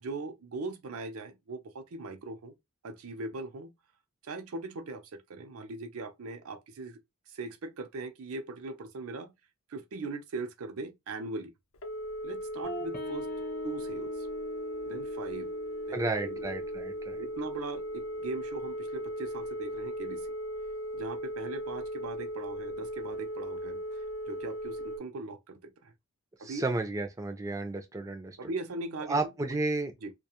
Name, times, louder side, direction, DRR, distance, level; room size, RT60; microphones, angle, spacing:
voice 1, 0.0-2.5 2.8-3.7 4.2-7.0 7.3-9.3 9.7-11.5 12.2-13.3 13.6-14.3 14.8-15.5 15.9-16.4 17.2-20.3 20.9-23.8 24.3-25.9 26.4-26.6 28.4-29.2 30.0-30.1, right 3 dB, 90° right, 0.5 m, -40 dB
Telephone, 11.7-25.0, equal, 75° left, 0.5 m, -37 dB
sound 1, 12.6-19.5, left 3 dB, 40° left, 0.7 m, -45 dB
voice 2, 15.9-17.2 26.4-28.4 29.1-29.9, right 2 dB, 15° right, 0.3 m, -32 dB
2.3 x 2.2 x 2.8 m
head